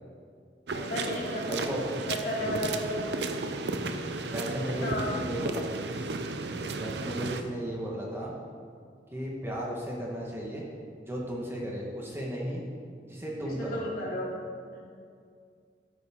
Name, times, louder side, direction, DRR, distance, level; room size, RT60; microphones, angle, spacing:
voice 1, 0.7-1.7 2.1-3.3 4.7-5.1 13.6-14.4 14.7-14.9, left 1 dB, 55° left, -5 dB, 2.7 m, -34 dB
sound 1, 0.7-7.4, right 3 dB, 70° right, 0.7 m, -34 dB
voice 2, 1.5-2.1 4.3-5.8 6.8-8.3 9.1-10.6 11.0-12.6 13.0-13.8, equal, 15° right, -3 dB, 1.5 m, -35 dB
13.0 x 9.1 x 3.7 m, 2.2 s
head